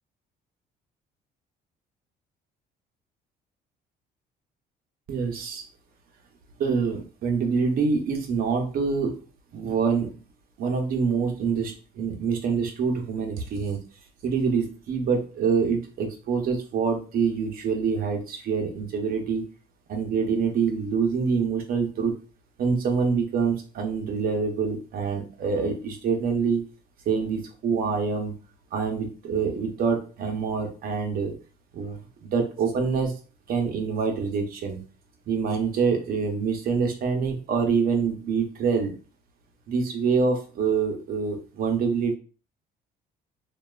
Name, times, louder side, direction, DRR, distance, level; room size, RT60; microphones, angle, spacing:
voice 1, 5.1-5.7 6.6-9.2 9.5-10.1 10.6-13.8 14.2-19.5 19.9-22.1 22.6-26.6 27.1-28.3 28.7-31.3 31.7-33.1 33.5-34.8 35.3-38.9 39.7-42.1, right 5 dB, 60° right, 3 dB, 0.8 m, -26 dB
2.7 x 2.3 x 2.3 m, 0.37 s
cardioid pair, 110°, 17 cm